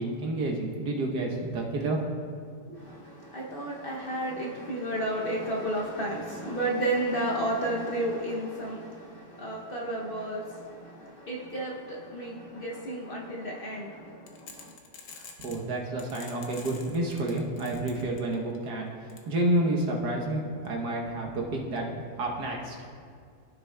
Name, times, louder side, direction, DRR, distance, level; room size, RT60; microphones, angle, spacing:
voice 1, 0.0-2.0 15.1-18.9 19.3-22.8, right 1 dB, 65° right, -1 dB, 1.5 m, -30 dB
voice 2, 2.7-14.7, right 1 dB, 90° left, -3 dB, 0.4 m, -32 dB
sound 1, 14.3-15.6 16.0-18.6 19.1-19.2, left 5 dB, 55° left, 1.0 m, -46 dB
14.0 x 6.2 x 2.2 m, 2.2 s
omnidirectional pair, 2.0 m